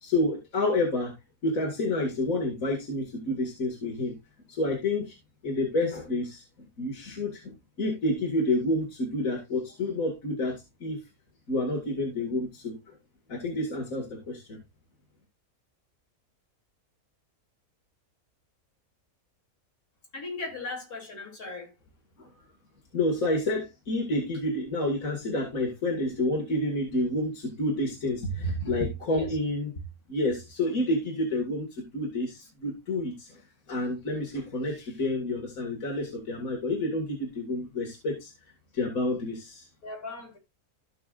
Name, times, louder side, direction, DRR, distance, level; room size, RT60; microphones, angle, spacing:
voice 1, 0.0-1.1 1.4-4.2 4.5-5.1 5.4-6.4 6.8-7.5 7.8-11.0 11.5-12.7 13.3-14.6 22.9-29.7 30.1-33.3 33.7-38.3 38.7-39.6, left 1 dB, 65° left, 2.6 m, -29 dB
voice 2, 20.1-21.7 29.0-29.4 39.8-40.4, left 3 dB, 85° left, 3.8 m, -38 dB
15.5 x 5.9 x 2.5 m
omnidirectional pair, 1.5 m